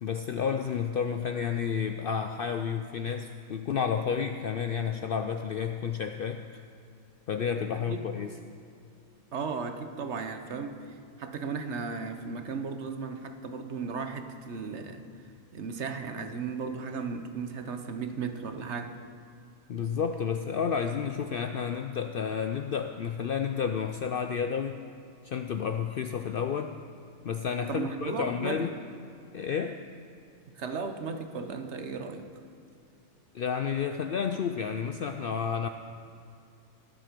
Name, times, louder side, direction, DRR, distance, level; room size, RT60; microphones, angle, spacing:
voice 1, 0.0-6.4 7.3-8.3 19.7-24.8 25.2-26.8 27.2-28.7 29.3-29.8 33.3-35.7, left 7 dB, 65° left, 6 dB, 0.6 m, -31 dB
voice 2, 9.3-15.0 15.5-19.0 27.7-28.7 30.5-32.3, right 5 dB, 60° right, 7 dB, 1.2 m, -35 dB
21.0 x 7.5 x 5.2 m, 2.5 s
omnidirectional pair, 1.4 m